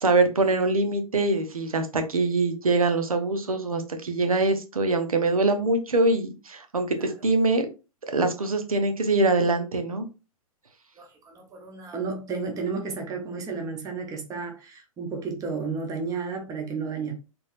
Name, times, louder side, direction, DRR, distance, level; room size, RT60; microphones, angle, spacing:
voice 1, 0.0-7.7 8.1-10.1, right 2 dB, 75° right, 0.9 m, -23 dB
voice 2, 11.0-17.1, right 4 dB, 20° right, 1.0 m, -32 dB
3.9 x 3.4 x 2.5 m
figure-of-eight pair, 110°, 18 cm